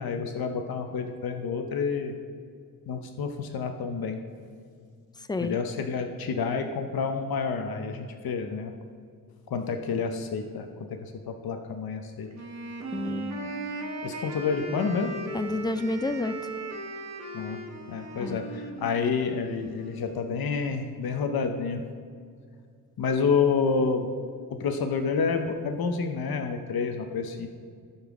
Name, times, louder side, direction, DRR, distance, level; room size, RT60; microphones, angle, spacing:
voice 1, 0.0-2.1 2.9-4.2 5.4-8.7 9.5-10.7 11.3-12.3 14.0-15.1 17.3-17.6 17.9-21.8 23.0-24.1 24.6-27.5, left 5 dB, 85° left, 5 dB, 0.8 m, -29 dB
Wind instrument woodwind instrument, 12.3-20.2, right 2 dB, 50° right, 1.1 m, -38 dB
voice 2, 12.9-13.5 15.3-16.3 18.2-18.4, left 2 dB, 10° left, 10 dB, 0.4 m, -30 dB
15.5 x 5.6 x 3.5 m, 2.2 s
wide cardioid pair, 110°, 35 cm